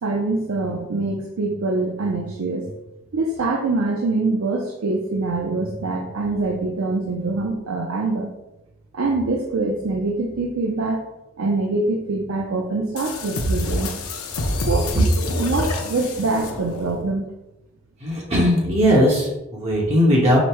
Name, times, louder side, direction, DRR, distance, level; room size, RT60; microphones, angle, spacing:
voice 1, 0.0-2.7 3.1-8.3 8.9-11.0 11.4-13.9 14.7-14.9 15.4-17.3, right 3 dB, 75° right, 1 dB, 0.5 m, -24 dB
sound 1, 13.0-17.1, left 2 dB, 90° left, 0.6 m, -29 dB
voice 2, 18.0-20.4, equal, 30° right, -5 dB, 1.0 m, -18 dB
5.1 x 2.1 x 4.4 m, 0.94 s
head